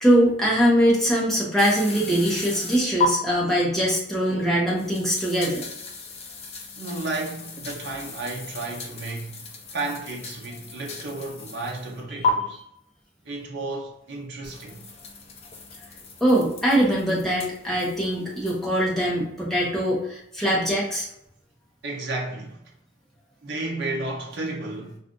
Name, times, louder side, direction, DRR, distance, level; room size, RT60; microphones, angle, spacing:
voice 1, 0.0-5.6 16.2-21.1, equal, ahead, 0.8 m, -22 dB
sound 1, 1.6-3.1 4.8-12.0 12.2-12.3 14.4-18.6, left 5 dB, 30° left, 0.4 m, -35 dB
voice 2, 4.3-4.6 6.8-9.4 9.7-12.6 13.2-14.8 21.8-22.6 23.4-25.0, right 2 dB, 55° right, 0.6 m, -32 dB
2.5 x 2.4 x 3.6 m
head